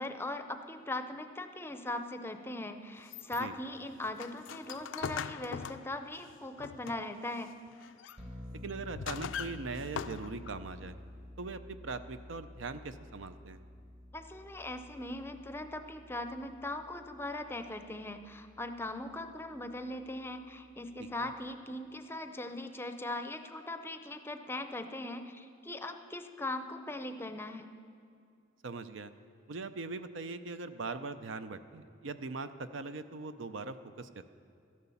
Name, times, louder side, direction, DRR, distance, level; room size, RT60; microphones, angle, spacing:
voice 1, 0.0-7.5 14.1-27.7, left 1 dB, 10° left, 8 dB, 0.6 m, -40 dB
sound 1, 3.0-7.3 7.7-8.2 8.7-10.7, left 7 dB, 70° left, 0.4 m, -42 dB
sound 2, 8.2-21.6, left 1 dB, 35° right, 1.6 m, -51 dB
voice 2, 8.6-10.9 11.4-13.6 21.2-21.3 28.6-29.1 29.5-34.2, right 3 dB, 70° right, 11 dB, 0.6 m, -41 dB
13.0 x 11.0 x 7.1 m, 2.4 s
head